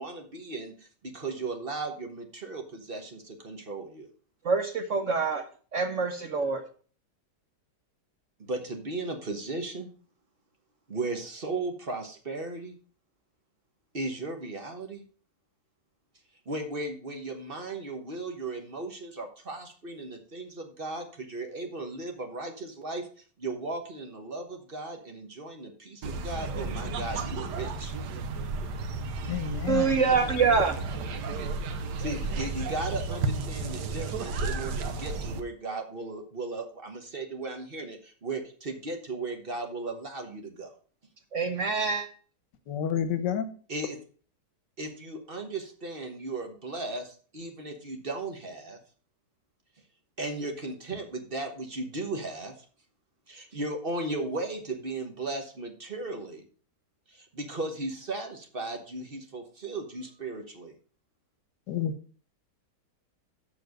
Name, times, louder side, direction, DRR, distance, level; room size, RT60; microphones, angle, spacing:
voice 1, 0.0-4.1 8.4-9.9 10.9-12.8 13.9-15.0 16.5-23.1 23.4-27.9 32.0-40.7 43.7-44.0 44.8-48.8 50.2-52.6 53.3-56.4 57.1-60.7, right 2 dB, 35° right, 4 dB, 1.2 m, -36 dB
voice 2, 4.4-5.4 5.7-6.6 29.7-30.7 41.3-42.1, right 5 dB, 55° right, 7 dB, 0.9 m, -25 dB
sound 1, 26.0-35.4, right 3 dB, 75° right, 1.5 m, -33 dB
voice 3, 29.3-29.9 42.7-43.4 61.7-61.9, left 9 dB, 75° left, 11 dB, 1.5 m, -29 dB
7.1 x 5.8 x 6.4 m, 0.42 s
omnidirectional pair, 1.9 m